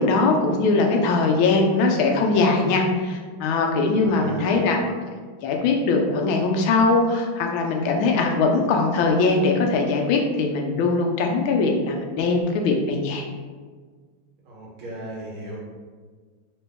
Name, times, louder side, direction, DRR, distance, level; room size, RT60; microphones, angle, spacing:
voice 1, 0.0-4.8 5.4-13.3, left 3 dB, 80° left, 2 dB, 1.4 m, -21 dB
voice 2, 4.0-4.8 14.5-15.6, right 2 dB, 90° right, -3 dB, 1.9 m, -36 dB
3.7 x 3.0 x 3.4 m, 1.5 s
omnidirectional pair, 2.2 m